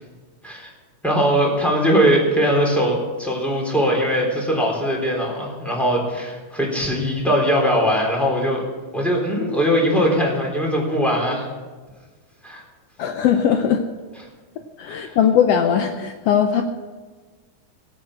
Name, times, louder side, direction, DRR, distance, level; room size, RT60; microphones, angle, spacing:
voice 1, 1.0-8.6 8.9-11.4 12.4-12.6 14.9-15.2, equal, ahead, -2 dB, 3.4 m, -20 dB
voice 2, 13.0-13.8 14.8-16.6, left 8 dB, 80° left, 5 dB, 1.4 m, -19 dB
18.5 x 8.7 x 6.3 m, 1.4 s
omnidirectional pair, 3.7 m